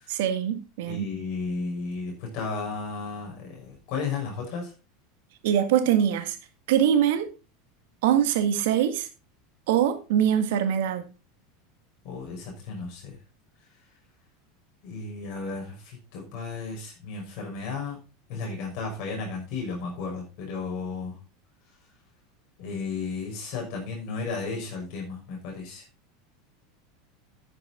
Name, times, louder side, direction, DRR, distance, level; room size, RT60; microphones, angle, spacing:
voice 1, 0.1-1.1 5.4-6.4 6.7-7.3 8.0-9.1 9.7-11.0, right 9 dB, 60° right, 1.8 m, -23 dB
voice 2, 0.9-4.7 12.0-13.2 14.8-18.0 18.3-21.1 22.6-25.8, left 4 dB, 50° left, 6.0 m, -34 dB
10.5 x 9.9 x 3.8 m
figure-of-eight pair, 80°, 0 cm